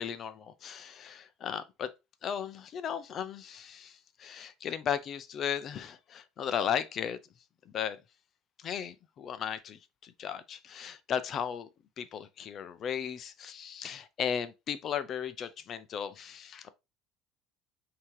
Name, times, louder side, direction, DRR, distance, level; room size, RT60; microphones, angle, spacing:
voice 1, 0.0-1.9 2.2-7.2 7.7-8.0 8.6-11.7 12.0-16.7, left 8 dB, 45° left, 0.6 m, -36 dB
5.5 x 2.9 x 3.1 m
supercardioid pair, 95°, 0 cm